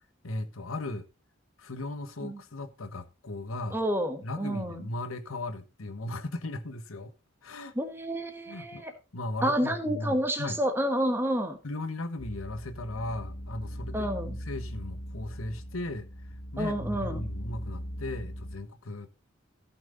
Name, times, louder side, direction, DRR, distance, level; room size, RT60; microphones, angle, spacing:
voice 1, 0.2-1.1 1.6-3.8 4.2-7.1 7.4-7.7 8.5-8.8 9.1-10.6 11.6-16.1 16.5-19.1, left 2 dB, 85° left, 1.3 m, -37 dB
voice 2, 3.7-4.8 7.7-8.9 9.4-11.6 13.9-14.4 16.6-17.3, equal, 10° right, 1.4 m, -29 dB
sound 1, 12.2-18.6, equal, 65° left, 1.7 m, -39 dB
14.5 x 6.1 x 3.9 m
head